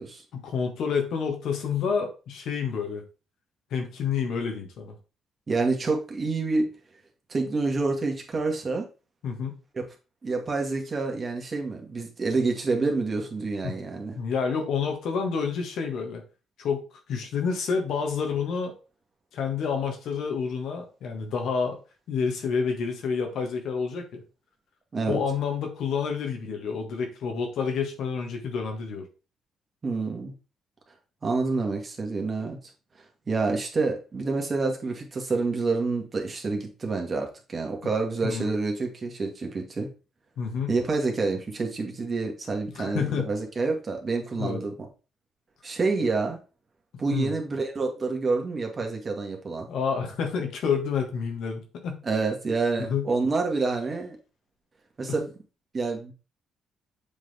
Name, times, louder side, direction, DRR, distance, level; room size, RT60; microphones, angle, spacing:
voice 1, 0.3-3.0 3.7-4.9 9.2-9.6 13.6-13.7 14.1-16.2 16.6-16.8 17.1-18.7 19.3-21.8 22.1-24.2 25.1-29.1 38.2-38.5 40.4-40.7 42.7-43.3 44.4-44.6 47.1-47.3 49.7-52.0 52.8-53.1, left 6 dB, 75° left, 4 dB, 1.6 m, -29 dB
voice 2, 5.5-6.7 7.3-8.9 9.7-9.8 10.2-14.2 24.9-25.2 29.8-30.3 31.2-32.6 33.3-39.9 40.7-44.7 45.6-46.4 47.0-49.7 52.0-54.2 55.0-55.3 55.7-56.1, right 3 dB, 35° right, 2 dB, 1.8 m, -28 dB
7.1 x 3.9 x 3.5 m, 0.32 s
cardioid pair, 90°, 0 cm